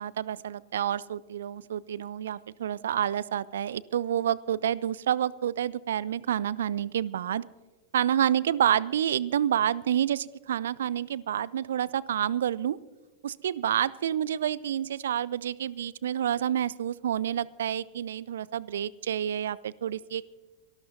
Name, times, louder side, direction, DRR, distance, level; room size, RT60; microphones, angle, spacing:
voice 1, 0.0-7.5 7.9-12.8 13.2-20.3, right 10 dB, 60° right, 23 dB, 0.3 m, -28 dB
25.5 x 13.0 x 2.8 m, 1.3 s
figure-of-eight pair, 90°, 0 cm